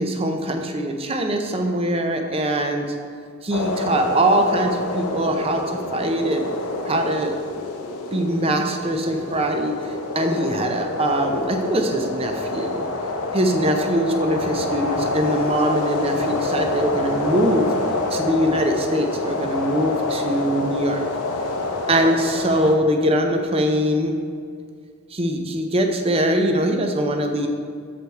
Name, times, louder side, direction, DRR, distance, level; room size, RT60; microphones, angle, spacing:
voice 1, 0.0-2.9 3.4-5.6 5.9-6.5 6.8-7.3 8.1-12.9 13.3-17.7 18.1-21.0 21.9-24.1 25.1-27.5, right 1 dB, 25° right, 4 dB, 0.5 m, -22 dB
sound 1, 3.5-22.8, left 2 dB, 85° left, 0.7 m, -27 dB
6.8 x 5.1 x 4.4 m, 2.2 s
head